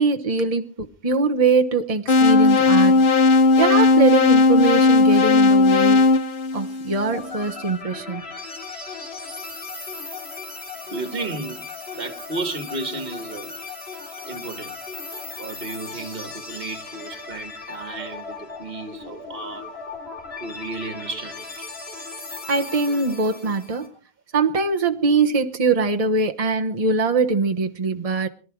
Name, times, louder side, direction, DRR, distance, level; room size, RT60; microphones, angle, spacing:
voice 1, 0.0-3.1 3.6-6.0 6.5-8.2 22.5-23.9 24.3-28.3, right 4 dB, 35° right, 1.2 m, -22 dB
sound 1, 2.1-7.2, left 3 dB, 55° left, 1.1 m, -16 dB
sound 2, 7.0-23.9, left 3 dB, 75° left, 4.0 m, -37 dB
voice 2, 10.9-13.6 14.3-14.8 15.4-19.8 20.4-21.7, right 3 dB, 60° right, 1.9 m, -33 dB
22.5 x 12.0 x 4.7 m
omnidirectional pair, 1.1 m